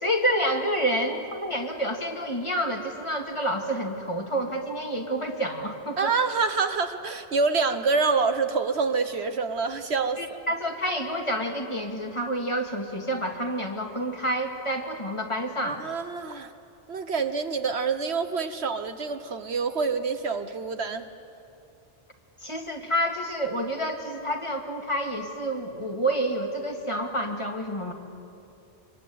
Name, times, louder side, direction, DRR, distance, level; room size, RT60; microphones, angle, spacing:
voice 1, 0.0-6.1 10.2-15.8 22.4-27.9, right 1 dB, 25° left, 2 dB, 2.2 m, -28 dB
voice 2, 6.0-10.4 15.6-16.5 16.9-21.1, right 4 dB, 65° right, 9 dB, 1.3 m, -26 dB
25.0 x 22.5 x 9.4 m, 2.8 s
omnidirectional pair, 1.2 m